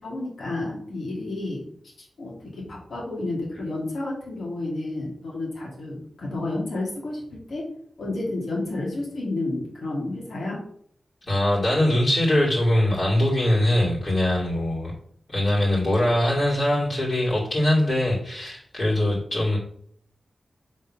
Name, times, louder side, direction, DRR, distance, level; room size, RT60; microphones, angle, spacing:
voice 1, 0.0-7.6 8.0-10.6, left 2 dB, 80° left, -2 dB, 2.4 m, -31 dB
voice 2, 11.2-14.9 15.3-19.6, left 1 dB, 55° left, -6 dB, 2.6 m, -22 dB
5.2 x 3.8 x 5.5 m, 0.62 s
cardioid pair, 65°, 0 cm